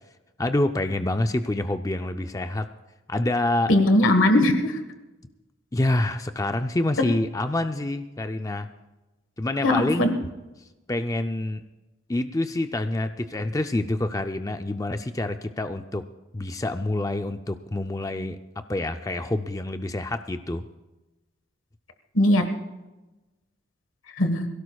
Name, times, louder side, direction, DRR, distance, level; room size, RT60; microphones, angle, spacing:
voice 1, 0.4-2.7 3.1-3.7 5.7-8.7 9.4-10.2 10.9-11.6 12.1-16.0 16.3-18.4 18.7-20.6, left 1 dB, 15° left, 8 dB, 0.4 m, -27 dB
voice 2, 3.7-4.8 9.6-10.1 22.1-22.5 24.2-24.5, left 1 dB, 85° left, 7 dB, 1.5 m, -19 dB
23.0 x 16.5 x 2.3 m, 1.1 s
head